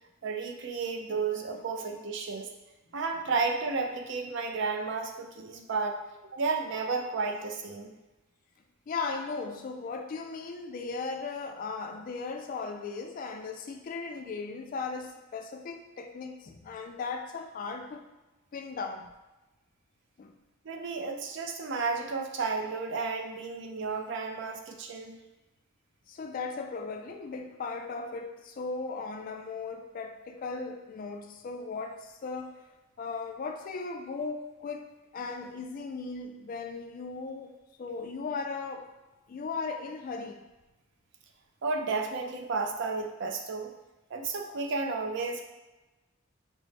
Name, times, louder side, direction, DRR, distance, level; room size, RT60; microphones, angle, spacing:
voice 1, 0.2-2.5 2.9-6.0 6.3-7.9 20.6-25.2 41.6-43.7 44.1-45.4, right 4 dB, 55° right, 3 dB, 0.4 m, -32 dB
voice 2, 8.9-18.0 18.5-19.1 20.2-20.3 26.1-32.7 33.0-38.9 39.3-40.4, left 4 dB, 40° left, 5 dB, 0.3 m, -37 dB
5.0 x 2.0 x 3.2 m, 1.1 s
head